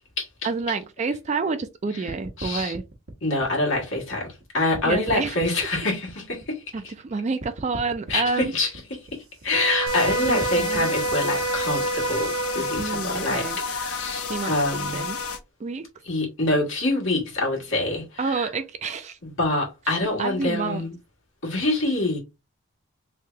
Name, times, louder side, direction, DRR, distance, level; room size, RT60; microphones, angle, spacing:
voice 1, 0.4-2.8 4.8-5.4 6.7-8.5 10.3-10.9 12.8-13.6 14.3-14.6 14.9-15.2 15.6-15.9 18.2-19.2 20.2-20.8, right 4 dB, 30° right, 0.3 m, -28 dB
sound 1, 2.1-4.4 4.7-7.1 7.4-12.8, right 1 dB, 70° right, 0.9 m, -40 dB
voice 2, 2.4-2.7 3.2-6.9 8.1-8.7 9.1-15.1 16.0-18.5 19.2-20.9 21.4-22.2, left 2 dB, 55° left, 1.6 m, -26 dB
Wind instrument woodwind instrument, 9.5-13.0, right 3 dB, 20° left, 0.7 m, -27 dB
sound 2, 9.9-15.4, left 4 dB, 80° left, 0.7 m, -31 dB
3.3 x 2.7 x 3.4 m
head